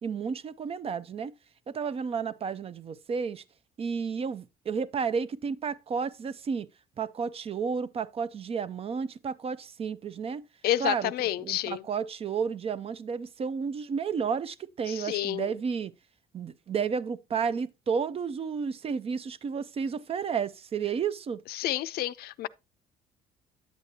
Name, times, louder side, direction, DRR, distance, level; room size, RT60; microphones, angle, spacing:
voice 1, 0.0-1.3 1.7-3.4 3.8-6.7 7.0-10.4 10.8-11.1 11.4-15.9 16.3-21.4, right 6 dB, 35° right, 0.5 m, -32 dB
voice 2, 10.6-11.8 14.9-15.5 21.5-22.5, left 13 dB, 65° left, 0.4 m, -30 dB
9.1 x 8.1 x 2.8 m
cardioid pair, 110°, 17 cm